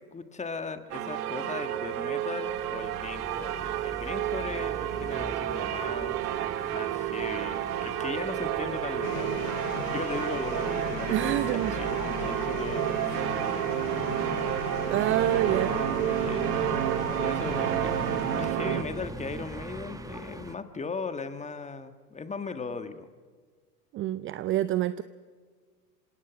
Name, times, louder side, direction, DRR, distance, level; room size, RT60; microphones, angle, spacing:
voice 1, 0.0-3.6 3.8-6.2 6.6-13.6 14.8-16.4 17.2-18.0 18.3-23.1, left 4 dB, 15° left, 10 dB, 1.5 m, -38 dB
sound 1, 0.9-18.8, right 12 dB, 65° right, 1.8 m, -30 dB
sound 2, 2.4-20.6, right 2 dB, 5° right, 1.2 m, -43 dB
sound 3, 9.0-18.5, left 17 dB, 55° left, 0.9 m, -38 dB
voice 2, 11.1-11.7 14.9-15.7 23.9-25.0, right 13 dB, 25° right, 15 dB, 0.5 m, -27 dB
26.5 x 17.5 x 6.2 m, 1.5 s
hypercardioid pair, 95°, 48 cm